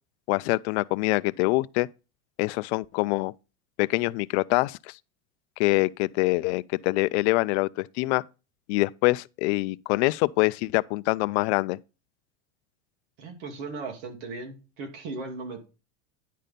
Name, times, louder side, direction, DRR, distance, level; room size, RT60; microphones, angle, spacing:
voice 1, 0.3-1.9 2.4-3.3 3.8-4.9 5.6-8.2 8.7-11.8, left 23 dB, 65° left, 0.5 m, -25 dB
voice 2, 13.2-15.7, right 3 dB, 75° right, 2.6 m, -37 dB
10.0 x 4.2 x 5.1 m
supercardioid pair, 145°, 37 cm